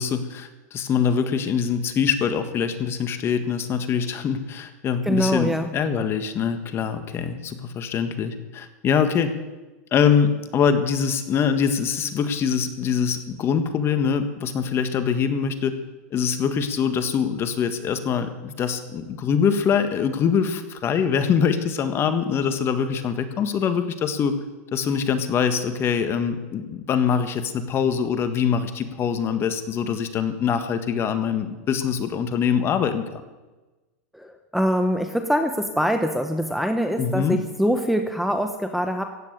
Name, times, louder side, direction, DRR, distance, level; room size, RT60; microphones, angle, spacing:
voice 1, 0.0-9.3 9.9-15.7 16.1-24.4 24.7-33.2 37.0-37.4, left 7 dB, 30° left, 8 dB, 1.7 m, -23 dB
voice 2, 5.1-5.7 34.1-34.3 34.5-39.0, equal, ahead, 6 dB, 1.0 m, -23 dB
15.5 x 9.1 x 9.1 m, 1.2 s
supercardioid pair, 130°, 8 cm